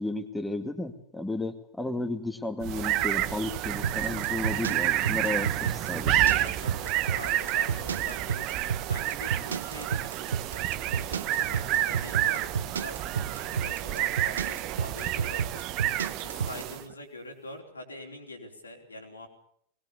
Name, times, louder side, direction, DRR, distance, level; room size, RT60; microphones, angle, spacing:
voice 1, 0.0-6.2, left 2 dB, 5° left, 8 dB, 2.1 m, -33 dB
sound 1, 2.6-16.9, right 13 dB, 40° right, 1.3 m, -29 dB
sound 2, 3.8-16.6, right 7 dB, 70° right, 1.0 m, -30 dB
voice 2, 6.3-8.5 8.9-15.7 16.2-19.3, left 1 dB, 80° left, 2 dB, 4.4 m, -44 dB
21.0 x 20.5 x 7.0 m, 0.66 s
figure-of-eight pair, 90°, 0 cm